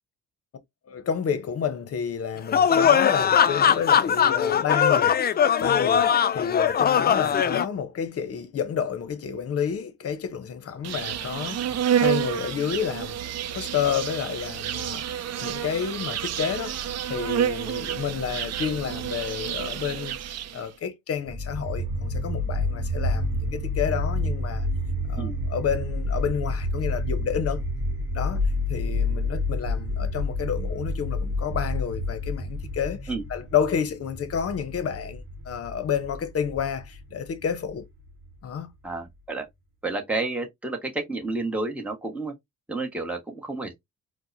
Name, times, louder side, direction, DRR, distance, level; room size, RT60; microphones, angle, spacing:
voice 1, 0.9-5.1 5.6-13.2 13.5-16.8 17.1-20.2 20.5-24.7 25.1-27.6 28.1-28.4 28.7-37.9 38.4-38.7, left 7 dB, 50° left, 0.8 m, -30 dB
sound 1, 2.5-7.6, left 8 dB, 35° left, 0.4 m, -20 dB
Insect, 10.8-20.7, right 9 dB, 60° right, 0.5 m, -29 dB
sound 2, 21.3-38.3, left 1 dB, 45° right, 1.1 m, -29 dB
voice 2, 38.8-39.5 39.8-42.3 42.7-43.7, right 2 dB, 5° right, 1.1 m, -30 dB
4.5 x 2.1 x 2.5 m
cardioid pair, 90°, 30 cm